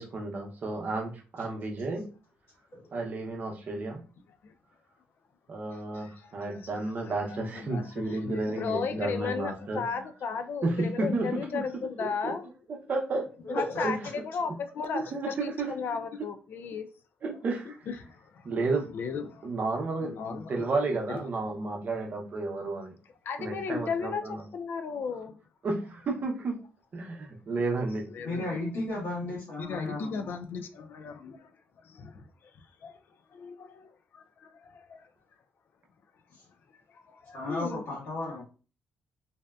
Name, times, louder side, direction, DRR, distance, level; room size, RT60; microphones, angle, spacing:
voice 1, 0.0-2.0 2.9-4.0 5.5-9.8 10.6-11.3 11.5-11.6 12.0-12.3 12.9-13.2 13.8-14.0 14.9-15.7 17.2-17.8 18.4-18.9 19.4-22.9 23.4-24.4 25.6-26.5 26.9-28.0, right 3 dB, 45° right, 0.7 m, -32 dB
voice 2, 5.7-12.5 13.5-16.9 17.6-18.4 18.7-19.6 20.0-21.3 23.2-25.4 25.8-26.2 27.5-28.7 29.6-31.5 31.8-32.5 32.8-33.0 33.3-35.0 36.9-37.8 38.3-38.4, left 5 dB, 55° left, 0.4 m, -36 dB
voice 3, 13.4-13.9 28.2-30.3 36.3-36.4 37.3-38.4, left 1 dB, 75° left, 1.2 m, -34 dB
2.7 x 2.1 x 2.3 m
cardioid pair, 110°, 4 cm